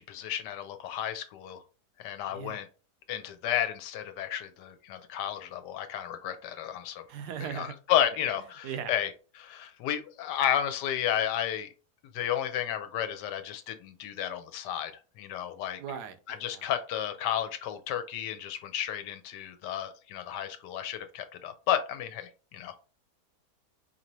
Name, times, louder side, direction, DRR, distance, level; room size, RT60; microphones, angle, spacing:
voice 1, 0.0-1.6 2.0-2.7 3.1-7.0 7.5-9.1 9.4-11.7 12.1-14.9 15.2-15.8 16.3-22.8, left 10 dB, 85° left, 1.2 m, -32 dB
voice 2, 2.3-2.6 7.1-7.7 8.6-8.9 15.8-16.7, right 8 dB, 80° right, 1.2 m, -38 dB
4.7 x 2.7 x 2.9 m
omnidirectional pair, 1.8 m